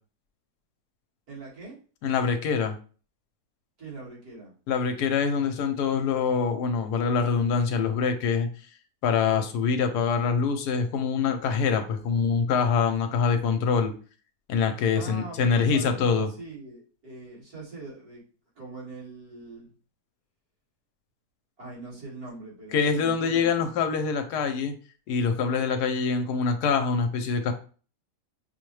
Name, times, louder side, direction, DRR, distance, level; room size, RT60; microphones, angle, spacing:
voice 1, 1.3-1.8 3.8-4.5 14.9-18.2 18.6-19.7 21.6-23.7, right 3 dB, 65° right, -7 dB, 2.4 m, -42 dB
voice 2, 2.0-2.8 4.7-8.5 9.0-13.9 14.5-16.3 22.7-24.7 25.1-27.5, left 5 dB, 80° left, 7 dB, 1.2 m, -25 dB
5.7 x 2.1 x 3.1 m, 0.39 s
omnidirectional pair, 1.7 m